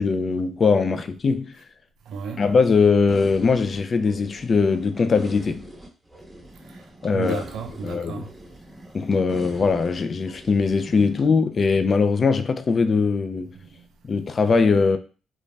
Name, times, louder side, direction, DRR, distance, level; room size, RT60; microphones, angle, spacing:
voice 1, 0.0-1.5 2.4-5.7 7.0-7.4 7.8-8.2 8.9-13.5 14.0-15.0, left 4 dB, 40° left, 0.3 m, -21 dB
voice 2, 2.1-2.5 6.6-6.9 7.1-8.3 13.5-13.9, right 6 dB, 75° right, 0.5 m, -33 dB
sound 1, 3.1-11.2, equal, 10° right, 0.9 m, -42 dB
2.5 x 2.1 x 3.1 m
cardioid pair, 90°, 0 cm